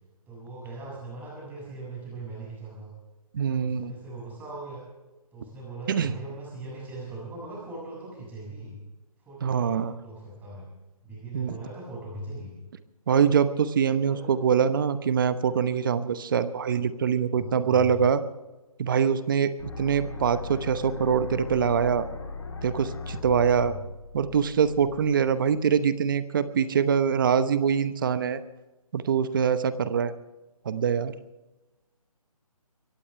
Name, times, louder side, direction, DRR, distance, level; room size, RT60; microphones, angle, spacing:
voice 1, 0.3-2.9 3.5-4.8 5.3-8.8 9.2-10.7 11.0-12.6 14.0-14.4 17.3-18.0 23.3-23.8, right 2 dB, 10° right, -4 dB, 6.7 m, -40 dB
voice 2, 3.3-3.9 5.9-6.1 9.4-9.9 11.3-11.5 13.1-18.2 18.8-22.1 22.6-23.7 24.1-28.4 28.9-30.1 30.6-31.1, right 7 dB, 35° right, 13 dB, 0.9 m, -24 dB
sound 1, 19.6-25.6, left 4 dB, 50° left, 3.5 m, -39 dB
24.0 x 17.0 x 3.3 m, 1.1 s
figure-of-eight pair, 155°, 19 cm